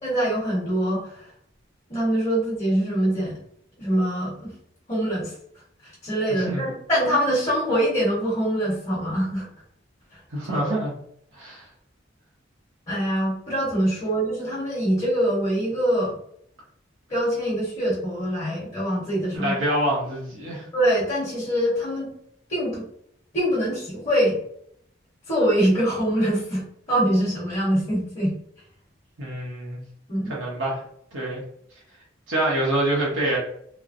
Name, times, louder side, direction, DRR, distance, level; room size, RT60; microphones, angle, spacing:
voice 1, 0.0-1.3 1.9-3.4 3.8-4.5 4.9-5.3 5.8-9.5 10.4-10.7 12.9-16.2 17.1-19.5 20.7-22.1 22.5-22.8 23.3-24.4 25.3-28.3 30.1-30.3, equal, 35° left, -7 dB, 1.0 m, -24 dB
voice 2, 10.3-10.9 11.3-11.7 19.3-20.7 29.2-29.8 30.3-30.8 31.1-31.4 32.3-33.4, right 1 dB, 90° right, -5 dB, 0.9 m, -26 dB
3.1 x 2.0 x 2.5 m, 0.67 s
head